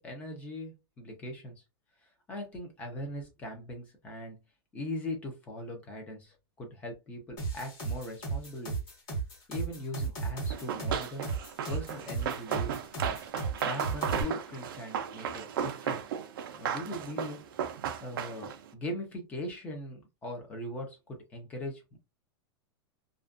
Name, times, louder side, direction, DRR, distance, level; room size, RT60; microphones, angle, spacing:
voice 1, 0.0-1.5 2.0-4.4 4.7-8.8 9.5-11.2 11.7-13.2 13.6-16.0 16.5-17.4 18.0-22.0, left 1 dB, 10° left, 3 dB, 0.4 m, -40 dB
sound 1, 7.4-14.2, right 4 dB, 30° left, 1.1 m, -34 dB
Run, 10.5-18.7, right 8 dB, 55° right, 0.4 m, -35 dB
2.5 x 2.2 x 2.3 m, 0.24 s
supercardioid pair, 180°, 14 cm